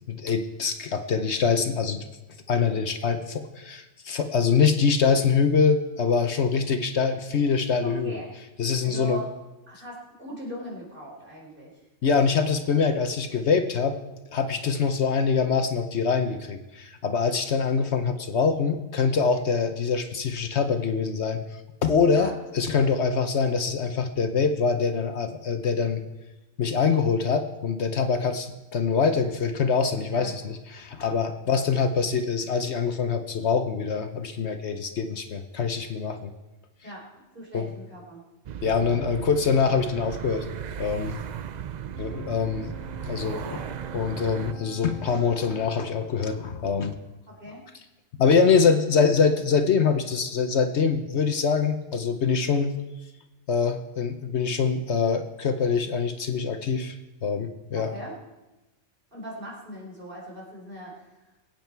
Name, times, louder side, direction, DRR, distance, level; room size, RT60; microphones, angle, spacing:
voice 1, 0.1-2.1 2.5-8.2 8.6-9.2 12.0-14.0 14.3-21.4 21.8-26.0 26.6-36.3 37.5-37.6 38.6-40.5 40.8-41.2 42.0-42.7 43.0-43.4 43.9-46.9 48.1-52.7 53.5-56.9 57.2-57.9, left 5 dB, 65° left, 8 dB, 1.1 m, -24 dB
voice 2, 7.8-8.3 8.8-9.3 9.7-11.8 22.1-22.4 30.1-30.3 36.8-37.0 37.3-38.2 43.3-43.7 47.3-47.6 57.7-58.1 59.1-61.2, equal, 45° right, -3 dB, 4.3 m, -40 dB
sound 1, 38.4-44.5, right 9 dB, 60° right, 0.4 m, -36 dB
Wind instrument woodwind instrument, 41.8-45.8, right 1 dB, 85° right, 2.2 m, -46 dB
21.5 x 9.0 x 4.6 m, 1.1 s
omnidirectional pair, 1.3 m